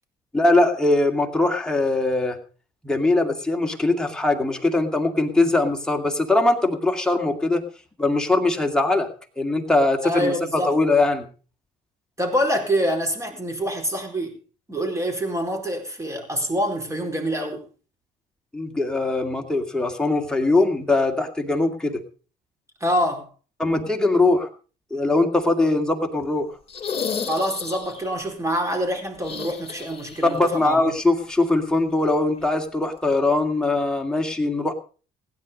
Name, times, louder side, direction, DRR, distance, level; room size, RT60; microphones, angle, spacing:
voice 1, 0.3-2.4 2.8-7.6 8.0-9.1 9.4-11.3 18.5-22.0 23.6-24.5 24.9-26.5 30.2-34.7, left 2 dB, 5° left, 2.3 m, -21 dB
voice 2, 10.0-10.7 12.2-14.3 14.7-17.6 22.8-23.2 27.3-30.9, equal, 15° right, 4.5 m, -25 dB
sound 1, 26.7-28.1 29.2-30.4 30.6-30.7 32.4-32.5, left 6 dB, 35° left, 3.5 m, -32 dB
16.5 x 10.0 x 5.2 m
cardioid pair, 110°, 17 cm